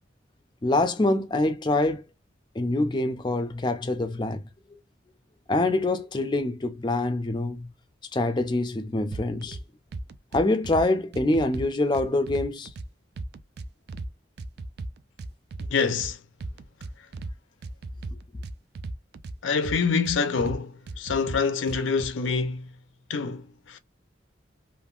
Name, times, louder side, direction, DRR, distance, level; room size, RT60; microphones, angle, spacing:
voice 1, 0.6-2.0 2.6-4.4 5.5-7.7 8.1-9.6 10.3-12.7, left 2 dB, 25° left, 0.4 m, -25 dB
sound 1, 9.1-9.6 9.9-10.8 11.1-12.9 13.2-14.1 14.4-16.1 16.4-17.3 17.6-19.3 19.6-20.6 20.9-22.1, right 2 dB, 55° right, 0.4 m, -36 dB
voice 2, 15.7-16.2 19.4-22.7 23.1-23.8, left 5 dB, 85° left, 0.6 m, -26 dB
3.4 x 2.5 x 2.4 m
head